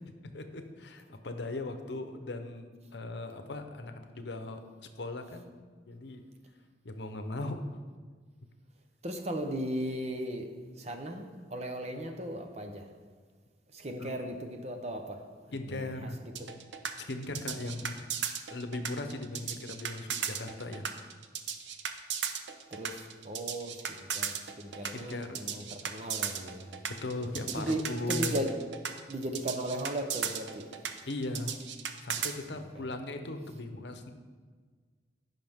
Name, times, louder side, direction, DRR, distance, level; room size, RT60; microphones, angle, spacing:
voice 1, 0.3-4.6 5.0-5.5 5.9-6.3 6.8-7.7 14.0-14.1 15.5-16.2 17.1-18.0 18.5-20.9 24.9-25.6 27.0-28.4 31.1-31.6 32.0-34.1, left 2 dB, 70° left, 0.8 m, -38 dB
voice 2, 9.0-13.0 13.7-16.5 22.7-26.8 27.5-28.8 29.1-31.0 32.5-32.7, right 1 dB, 35° right, 0.8 m, -37 dB
sound 1, 16.4-32.3, right 8 dB, 80° right, 0.7 m, -36 dB
15.0 x 5.7 x 3.6 m
head